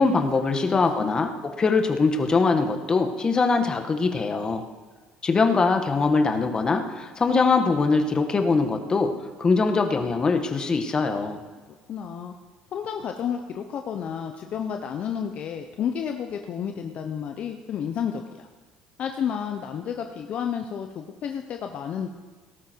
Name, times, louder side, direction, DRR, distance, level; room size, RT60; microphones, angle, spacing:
voice 1, 0.0-4.6 5.2-9.1 9.4-11.4, left 4 dB, 30° left, 5 dB, 1.8 m, -22 dB
voice 2, 0.5-1.1 11.9-12.3 12.7-18.5 19.0-22.1, left 8 dB, 55° left, 5 dB, 1.0 m, -31 dB
18.0 x 12.5 x 4.7 m, 1.4 s
supercardioid pair, 95°, 3 cm